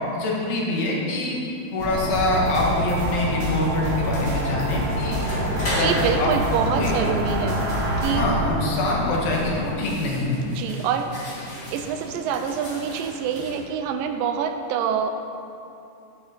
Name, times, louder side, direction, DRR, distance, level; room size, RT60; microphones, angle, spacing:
voice 1, 0.1-5.2 5.6-6.3 6.7-7.0 8.1-10.4, left 2 dB, 85° left, -2 dB, 3.1 m, -25 dB
sound 1, 1.3-13.6, left 1 dB, 35° left, 1.8 m, -37 dB
sound 2, 1.8-9.6, equal, 45° right, 0.8 m, -26 dB
voice 2, 5.8-7.6 8.0-8.3 10.5-15.1, right 7 dB, 80° right, 7 dB, 2.2 m, -26 dB
9.5 x 8.5 x 4.0 m, 2.6 s
omnidirectional pair, 4.0 m